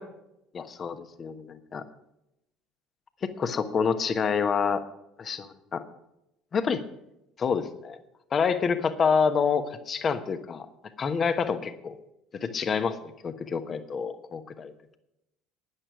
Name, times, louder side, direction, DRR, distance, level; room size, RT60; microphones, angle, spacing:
voice 1, 0.5-1.8 3.2-4.8 5.2-5.8 6.5-6.8 7.4-8.0 8.3-10.7 11.0-12.0 12.4-14.7, left 6 dB, 35° left, 10 dB, 1.2 m, -27 dB
11.5 x 10.5 x 6.1 m, 0.85 s
figure-of-eight pair, 60°, 0 cm